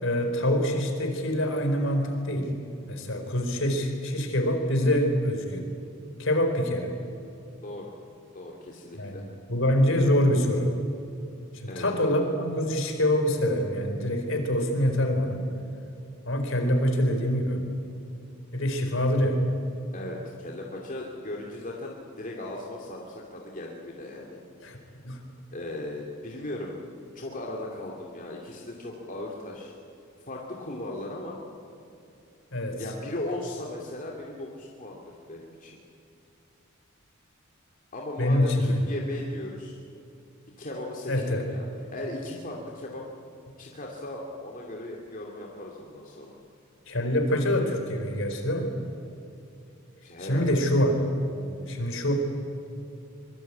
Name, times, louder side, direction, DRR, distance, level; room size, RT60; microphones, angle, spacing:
voice 1, 0.0-2.5 2.9-5.6 6.2-6.9 9.0-10.7 11.5-15.4 16.3-17.6 18.5-19.4 24.6-24.8 25.0-25.2 32.5-32.9 38.2-38.8 41.1-41.5 46.9-48.7 50.2-51.0 51.3-52.1, left 1 dB, 65° left, 5 dB, 4.4 m, -25 dB
voice 2, 7.6-7.9 8.3-9.2 11.7-11.9 19.9-24.4 25.5-26.7 27.1-29.7 30.3-31.4 32.8-35.8 37.9-39.8 40.6-43.0 43.6-46.3 50.0-50.5, left 1 dB, 40° left, -1 dB, 2.7 m, -37 dB
24.5 x 23.5 x 8.6 m, 2.7 s
head